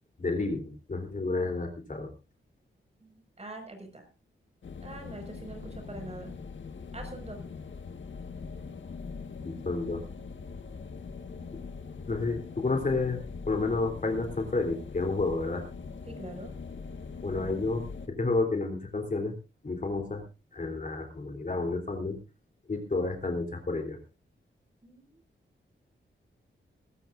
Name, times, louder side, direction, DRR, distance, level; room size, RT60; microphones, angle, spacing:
voice 1, 0.2-2.1 9.4-10.0 11.5-11.6 12.1-13.2 13.5-15.6 17.2-19.4 19.6-20.2 20.5-22.2 22.7-24.0, left 3 dB, 40° left, 4 dB, 3.4 m, -30 dB
voice 2, 3.0-4.1 4.8-6.3 6.9-7.4 11.4-11.6 16.1-16.5 24.8-25.2, right 2 dB, 30° right, 5 dB, 5.7 m, -44 dB
sound 1, 4.6-18.1, left 5 dB, 70° left, 1.6 m, -42 dB
21.5 x 13.5 x 2.6 m, 0.30 s
wide cardioid pair, 100°, 20 cm